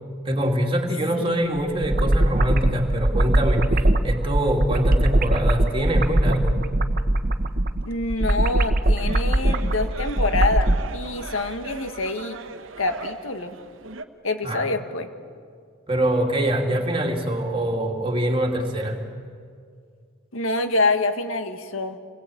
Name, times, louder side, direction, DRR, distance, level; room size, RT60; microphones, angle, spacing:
voice 1, 0.2-6.6 14.4-14.7 15.9-19.1, right 1 dB, 25° right, 1 dB, 3.0 m, -24 dB
sound 1, 1.6-10.8, right 1 dB, 45° right, 1.3 m, -21 dB
voice 2, 7.9-12.4 12.8-13.6 14.2-15.1 20.3-22.0, left 2 dB, 80° left, 7 dB, 1.9 m, -26 dB
sound 2, 9.0-14.0, right 4 dB, 65° right, 1.2 m, -39 dB
28.0 x 21.0 x 8.9 m, 2.1 s
head